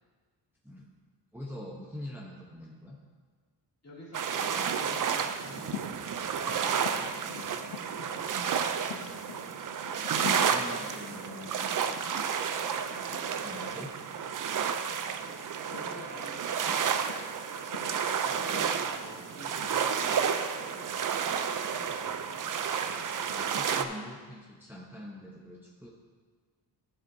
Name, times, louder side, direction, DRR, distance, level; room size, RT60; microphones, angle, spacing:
voice 1, 1.3-3.0 8.4-9.2 10.3-11.7 13.4-14.0 23.2-25.9, left 1 dB, 5° right, -4 dB, 0.8 m, -44 dB
voice 2, 3.8-6.0 6.3-8.2 15.6-16.9 18.2-22.3, left 1 dB, 35° left, -6 dB, 2.5 m, -49 dB
sound 1, 4.1-23.8, right 7 dB, 50° right, 0.5 m, -31 dB
sound 2, 5.5-19.7, left 7 dB, 85° left, 0.8 m, -47 dB
13.0 x 7.4 x 2.7 m, 1.6 s
wide cardioid pair, 130°, 44 cm